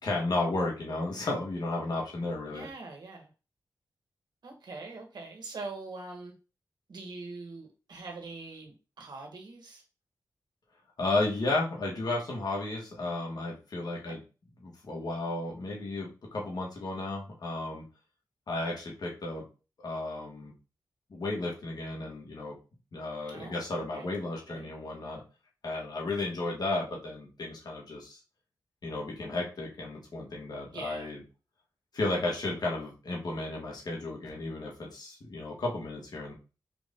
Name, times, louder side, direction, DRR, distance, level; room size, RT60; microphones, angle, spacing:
voice 1, 0.0-2.7 11.0-14.2 14.6-17.8 18.5-19.4 19.8-20.5 21.1-22.5 22.9-25.2 25.6-28.2 28.8-31.2 31.9-36.3, left 2 dB, 65° left, -2 dB, 1.7 m, -33 dB
voice 2, 2.5-3.3 4.4-6.3 6.9-9.8 14.1-14.2 23.3-24.1 24.5-24.7 30.7-31.1, right 3 dB, 70° right, 2 dB, 1.4 m, -43 dB
4.6 x 2.6 x 3.6 m, 0.32 s
cardioid pair, 75°, 8 cm